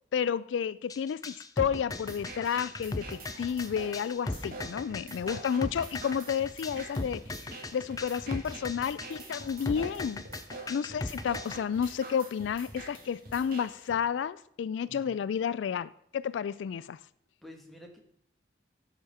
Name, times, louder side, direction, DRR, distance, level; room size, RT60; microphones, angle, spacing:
voice 1, 0.1-7.2 7.7-10.2 10.7-17.0, left 7 dB, 85° left, 0.3 m, -31 dB
sound 1, 0.9-11.6, left 2 dB, 20° left, 0.4 m, -37 dB
sound 2, 1.9-13.9, right 2 dB, 50° right, 2.2 m, -46 dB
voice 2, 14.9-15.3 17.4-18.0, left 1 dB, ahead, 1.3 m, -50 dB
12.0 x 5.0 x 5.5 m
head